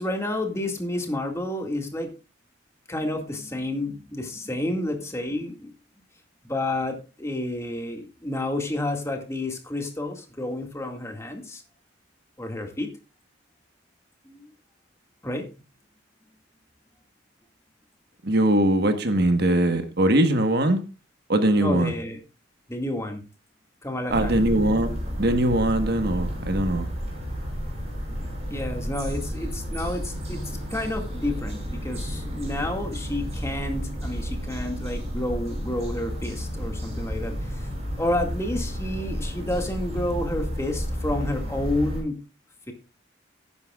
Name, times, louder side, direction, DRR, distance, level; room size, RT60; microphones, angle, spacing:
voice 1, 0.0-2.1 2.9-5.7 6.4-11.6 12.4-12.9 14.3-14.5 15.2-15.5 21.6-22.2 22.7-23.2 23.8-24.4 28.5-37.7 38.0-42.2 42.7-42.8, left 1 dB, 15° left, 2.1 m, -30 dB
voice 2, 18.2-20.8 21.3-21.9 24.1-26.9, right 1 dB, 55° right, 1.4 m, -21 dB
sound 1, 24.1-42.0, equal, 35° right, 6.0 m, -31 dB
18.5 x 9.8 x 2.4 m
head